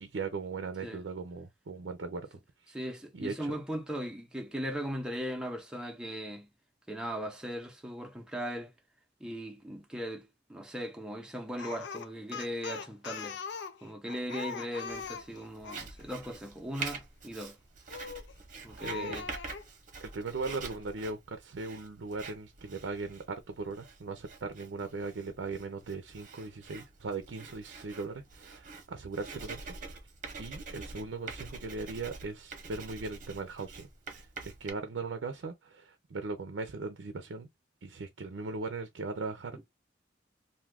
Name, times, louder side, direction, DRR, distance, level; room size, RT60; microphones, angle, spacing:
voice 1, 0.0-2.3 2.7-2.8 3.1-3.5 18.8-19.2 20.0-30.0 30.4-37.5 37.8-39.6, right 3 dB, 80° right, 0.5 m, -39 dB
voice 2, 2.7-6.5 6.9-8.7 9.2-13.4 13.8-17.6 18.6-19.3 39.5-39.6, equal, 5° right, 0.7 m, -38 dB
Speech, 11.6-15.9 17.9-18.3 18.8-19.7, left 6 dB, 70° left, 0.5 m, -41 dB
Writing, 14.9-34.7, right 4 dB, 45° right, 0.9 m, -46 dB
2.6 x 2.4 x 3.3 m
head